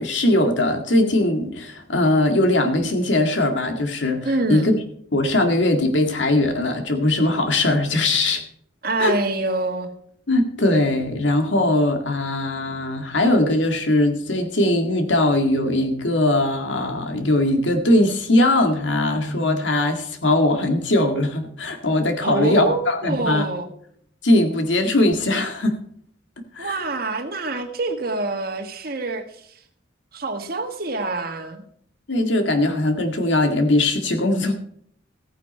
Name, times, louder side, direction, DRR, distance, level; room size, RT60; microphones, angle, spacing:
voice 1, 0.0-4.8 5.1-8.4 9.0-9.2 10.3-23.5 24.2-25.8 26.5-26.8 32.1-34.5, left 1 dB, 80° left, 5 dB, 2.0 m, -20 dB
voice 2, 4.2-4.7 8.8-9.9 22.2-23.7 26.6-29.5 30.1-31.6, right 2 dB, 50° right, 5 dB, 1.5 m, -26 dB
15.0 x 9.5 x 4.4 m, 0.63 s
head